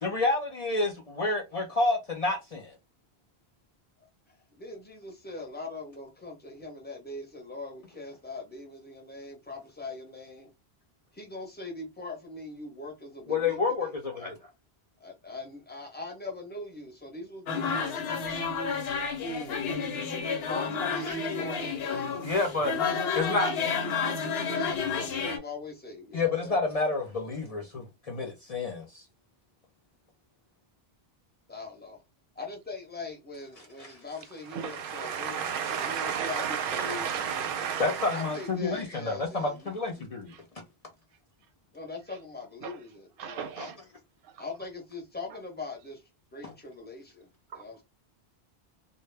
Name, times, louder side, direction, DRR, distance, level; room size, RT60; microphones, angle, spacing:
voice 1, 0.0-2.8 13.3-14.4 21.1-21.2 22.2-22.8 23.1-23.6 26.1-29.0 33.8-33.9 35.6-35.8 37.6-40.3 43.6-43.7 46.4-46.5, left 3 dB, 50° left, 0.5 m, -29 dB
voice 2, 4.0-10.5 11.1-13.9 15.0-18.0 19.2-19.6 20.4-22.3 24.4-26.6 31.5-32.0 32.4-37.1 38.1-39.8 41.7-43.5 44.4-46.0 46.3-47.3 47.5-47.8, left 3 dB, 10° left, 0.6 m, -41 dB
sound 1, 17.5-25.4, left 5 dB, 75° left, 0.9 m, -30 dB
voice 3, 34.5-38.4 40.3-40.4 42.6-42.8 43.2-43.8 47.5-47.6, right 7 dB, 65° right, 0.7 m, -33 dB
2.1 x 2.0 x 3.2 m
omnidirectional pair, 1.1 m